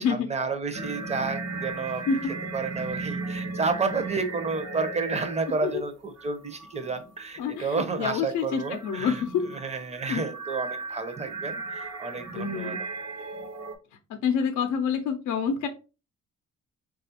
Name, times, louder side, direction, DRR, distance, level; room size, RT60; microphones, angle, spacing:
voice 1, 0.0-2.0 2.5-12.8, right 4 dB, 20° right, 8 dB, 0.6 m, -31 dB
sound 1, 0.7-5.8 6.2-7.1 8.6-13.8, right 3 dB, 55° right, 0.7 m, -36 dB
voice 2, 7.4-9.4 10.1-10.3 12.3-12.8 14.1-15.7, left 6 dB, 75° left, 6 dB, 0.5 m, -27 dB
3.2 x 2.4 x 2.8 m, 0.31 s
cardioid pair, 90°, 30 cm